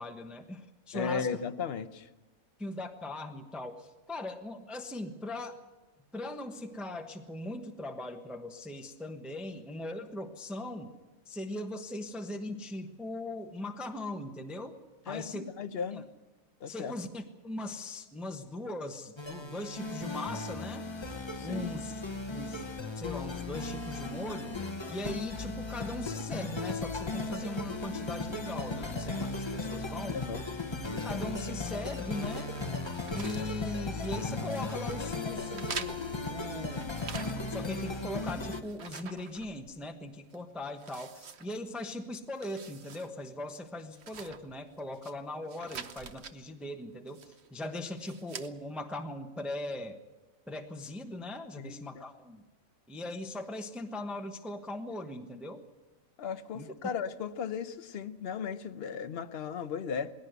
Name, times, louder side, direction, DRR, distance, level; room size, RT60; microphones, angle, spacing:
voice 1, 0.0-1.3 2.6-5.6 6.1-10.9 11.3-14.8 15.0-15.5 15.9-16.0 16.7-20.9 21.4-22.0 22.3-22.7 23.0-24.6 24.9-30.2 30.9-32.5 33.1-36.0 36.3-37.0 37.4-50.0 50.5-52.4 52.9-55.6 56.5-56.7, left 1 dB, ahead, 5 dB, 1.0 m, -40 dB
voice 2, 0.9-2.1 15.1-16.1 16.6-16.9 21.4-21.7 30.1-30.4 51.6-51.8 56.2-60.1, left 6 dB, 50° left, 9 dB, 1.0 m, -36 dB
sound 1, 19.2-38.6, left 3 dB, 20° left, 0.9 m, -36 dB
sound 2, 32.3-34.2 34.5-35.0 35.5-37.7 38.0-39.9 40.3-40.4 40.8-41.9 42.3-43.1 43.4-43.5 43.9-45.1 45.5-46.4 47.1-47.5 47.9-48.5, right 6 dB, 55° right, 1.2 m, -46 dB
20.0 x 17.0 x 8.1 m, 1.1 s
omnidirectional pair, 1.4 m